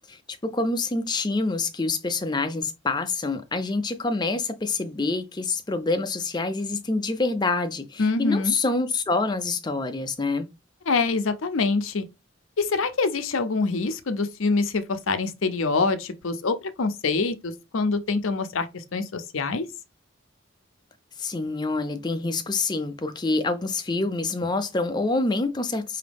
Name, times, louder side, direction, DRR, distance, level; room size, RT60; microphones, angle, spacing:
voice 1, 0.1-10.5 21.2-26.0, left 3 dB, 20° left, 0.5 m, -26 dB
voice 2, 8.0-8.5 10.9-12.0 12.6-19.6, left 3 dB, 75° left, 0.6 m, -25 dB
5.0 x 2.8 x 3.4 m
head